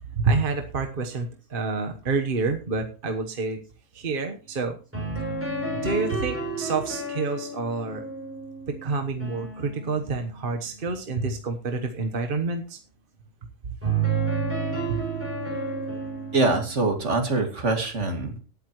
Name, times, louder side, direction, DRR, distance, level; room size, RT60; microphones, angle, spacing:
voice 1, 0.1-3.6 3.9-4.8 5.1-5.2 5.8-8.0 8.7-12.8 14.9-15.0, right 4 dB, 45° right, 5 dB, 1.3 m, -28 dB
sound 1, 4.9-10.8 13.8-17.4, right 4 dB, 10° right, 6.9 m, -31 dB
voice 2, 16.3-18.4, right 3 dB, 70° right, 5 dB, 2.6 m, -24 dB
18.5 x 9.0 x 3.0 m, 0.35 s
omnidirectional pair, 1.3 m